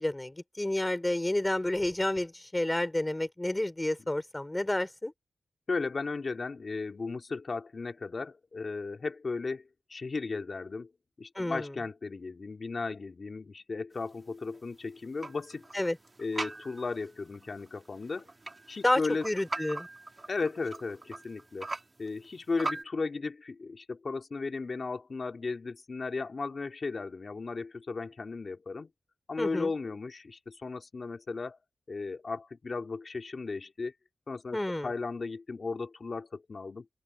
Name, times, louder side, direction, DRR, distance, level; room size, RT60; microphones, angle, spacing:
voice 1, 0.0-5.1 11.3-11.7 15.7-16.0 18.8-19.9 29.4-29.7 34.5-34.9, left 1 dB, 15° left, 5.1 m, -30 dB
voice 2, 5.7-9.6 9.9-10.9 11.2-15.7 16.2-18.3 18.7-19.2 20.3-21.7 22.0-28.9 29.3-31.6 31.9-33.9 34.3-34.6 34.8-36.9, left 4 dB, 45° left, 2.7 m, -35 dB
sound 1, 13.9-22.8, right 2 dB, 30° right, 2.4 m, -42 dB
open air
wide cardioid pair, 110°, 0 cm